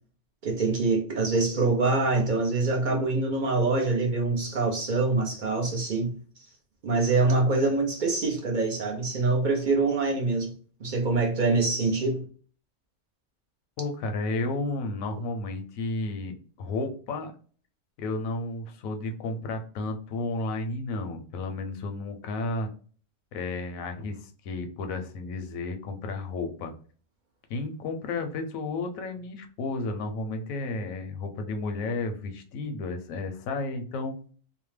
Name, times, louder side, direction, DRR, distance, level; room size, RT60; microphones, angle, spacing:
voice 1, 0.4-6.1 6.8-10.5 10.8-12.2, right 3 dB, 55° right, 0.5 m, -25 dB
voice 2, 13.8-17.3 18.0-22.7 23.3-26.7 27.5-34.1, left 3 dB, 85° left, 1.0 m, -32 dB
2.8 x 2.0 x 3.1 m
omnidirectional pair, 1.4 m